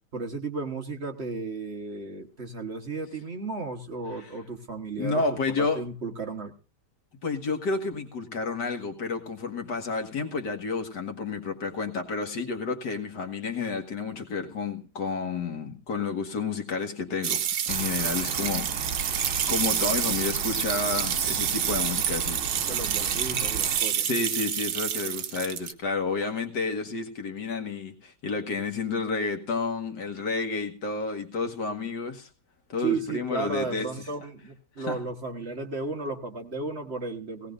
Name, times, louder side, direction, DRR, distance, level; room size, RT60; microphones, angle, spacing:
voice 1, 0.1-5.2 5.6-6.5 22.6-24.1 32.8-37.5, right 4 dB, 40° right, 4 dB, 1.5 m, -34 dB
voice 2, 5.0-5.9 7.2-18.7 19.5-22.4 22.7-22.8 24.0-32.3 32.7-33.9 34.8-35.0, left 4 dB, 75° left, 5 dB, 2.2 m, -30 dB
sound 1, 17.2-25.7, right 9 dB, 75° right, 1.5 m, -28 dB
sound 2, 17.7-23.8, right 3 dB, 60° right, 4.6 m, -36 dB
18.0 x 17.5 x 2.6 m, 0.34 s
omnidirectional pair, 1.9 m